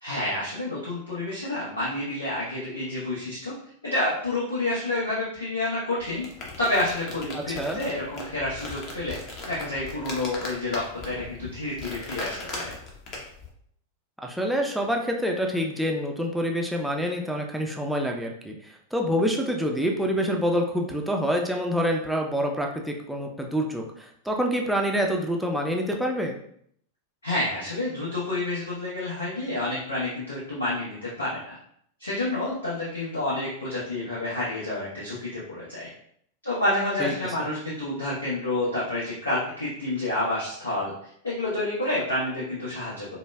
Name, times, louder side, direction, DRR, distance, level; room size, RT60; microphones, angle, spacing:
voice 1, 0.0-3.5 3.8-6.2 6.6-12.7 27.2-31.6 32.0-35.9 36.4-43.1, left 2 dB, 75° left, -8 dB, 0.9 m, -29 dB
sound 1, 6.0-13.5, left 2 dB, 40° left, 0.9 m, -38 dB
voice 2, 7.3-7.8 14.2-26.4 37.0-37.1, equal, ahead, 1 dB, 0.4 m, -27 dB
4.8 x 2.2 x 2.3 m, 0.67 s
figure-of-eight pair, 90°, 0 cm